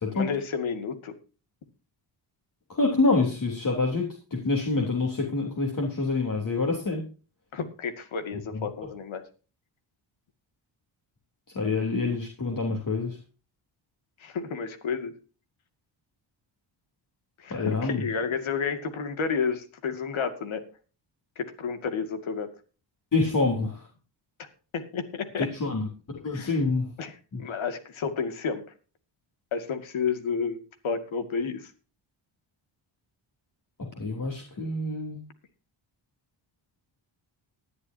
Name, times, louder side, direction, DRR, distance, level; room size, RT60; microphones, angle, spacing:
voice 1, 0.1-1.2 7.5-9.2 14.2-15.1 17.4-20.6 21.4-22.5 24.4-24.5 24.7-25.5 26.3-26.5 27.0-28.7 29.5-31.7, left 5 dB, 75° left, 8 dB, 2.3 m, -31 dB
voice 2, 2.7-7.0 8.5-8.9 11.5-13.2 17.5-18.0 23.1-23.8 25.4-26.9 27.3-27.4 33.8-35.2, left 3 dB, 40° left, 0 dB, 3.5 m, -27 dB
19.0 x 11.0 x 2.8 m, 0.35 s
cardioid pair, 95°, 47 cm